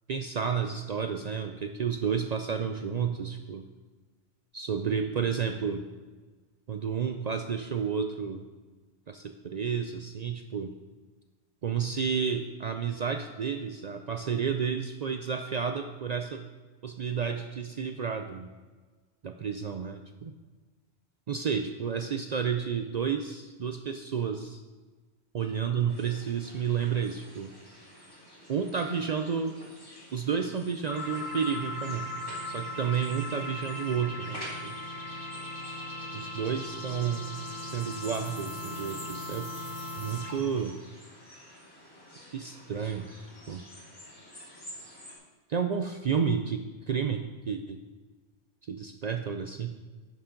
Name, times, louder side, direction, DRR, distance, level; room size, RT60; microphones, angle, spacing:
voice 1, 0.1-3.6 4.5-5.8 6.7-8.5 9.1-10.7 11.6-16.4 16.8-18.5 19.2-20.3 21.3-24.6 25.3-27.5 28.5-29.5 30.1-32.1 32.5-34.8 36.1-37.3 37.6-39.5 40.0-40.7 42.3-43.0 43.5-43.6 45.5-46.6 46.9-47.8 48.6-49.8, right 7 dB, 55° right, 6 dB, 0.5 m, -31 dB
sound 1, 25.9-45.2, equal, 20° left, 2.1 m, -49 dB
sound 2, 30.9-40.6, left 1 dB, 70° left, 1.5 m, -38 dB
10.5 x 7.1 x 3.8 m, 1.3 s
omnidirectional pair, 1.1 m